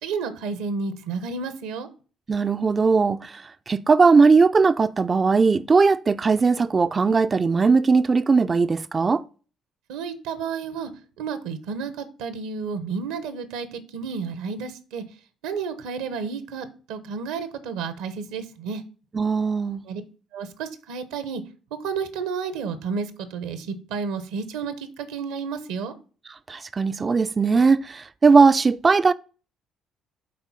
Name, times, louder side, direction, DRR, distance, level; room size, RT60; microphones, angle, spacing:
voice 1, 0.0-1.9 9.9-10.9 11.2-15.0 15.4-18.8 19.9-20.0 20.3-21.4 21.8-25.9, right 5 dB, 75° right, 1.0 m, -31 dB
voice 2, 2.3-9.2 19.1-19.8 26.5-29.1, right 4 dB, 35° right, 0.5 m, -19 dB
7.7 x 4.3 x 5.6 m
hypercardioid pair, 50°, 0 cm